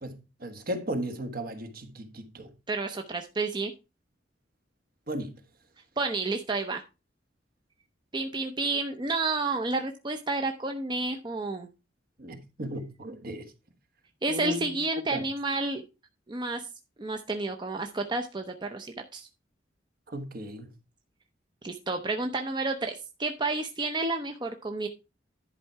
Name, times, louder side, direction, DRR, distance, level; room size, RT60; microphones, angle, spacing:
voice 1, 0.0-2.5 5.1-5.4 12.2-13.5 14.3-14.8 15.1-15.3 20.1-20.7, equal, 55° right, 1.3 m, -36 dB
voice 2, 2.7-3.7 6.0-6.8 8.1-11.7 14.2-15.8 16.3-16.7 17.0-19.3 21.6-24.9, right 3 dB, 25° right, 0.7 m, -30 dB
11.0 x 4.5 x 4.7 m
head